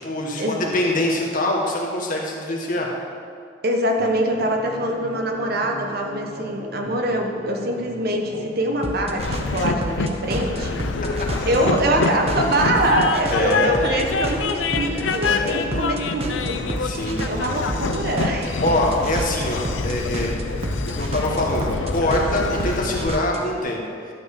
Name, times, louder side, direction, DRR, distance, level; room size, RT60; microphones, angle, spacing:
voice 1, 0.0-2.9 13.3-13.8 15.2-15.6 16.8-17.3 18.6-20.3 20.8-23.8, left 1 dB, 45° left, -1 dB, 1.6 m, -24 dB
voice 2, 3.6-10.8 11.5-16.6 17.0-18.6, right 1 dB, 55° right, 2 dB, 1.2 m, -24 dB
sound 1, 4.0-23.6, right 1 dB, 35° right, 0.9 m, -32 dB
Train, 9.2-23.1, left 4 dB, 85° left, 0.6 m, -26 dB
12.0 x 5.3 x 6.7 m, 2.4 s
head